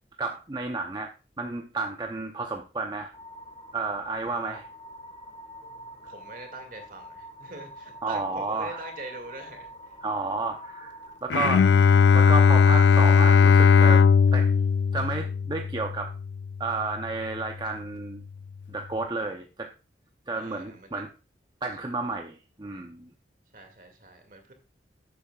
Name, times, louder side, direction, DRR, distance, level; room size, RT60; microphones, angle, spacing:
voice 1, 0.2-3.1 3.7-4.7 8.0-8.9 10.0-10.9 11.2-11.7 12.1-14.0 14.3-14.5 14.9-16.1 16.6-18.2 18.7-19.7 20.3-21.1 21.6-23.1, right 3 dB, 25° right, 4 dB, 0.7 m, -31 dB
sound 1, 3.1-11.2, equal, 30° left, 1.8 m, -45 dB
voice 2, 4.2-4.6 6.1-9.7 20.3-20.9 21.9-22.1 23.5-24.5, right 2 dB, 50° right, 5 dB, 2.3 m, -43 dB
Bowed string instrument, 11.3-16.6, left 6 dB, 80° left, 0.3 m, -18 dB
11.0 x 8.4 x 2.4 m, 0.33 s
head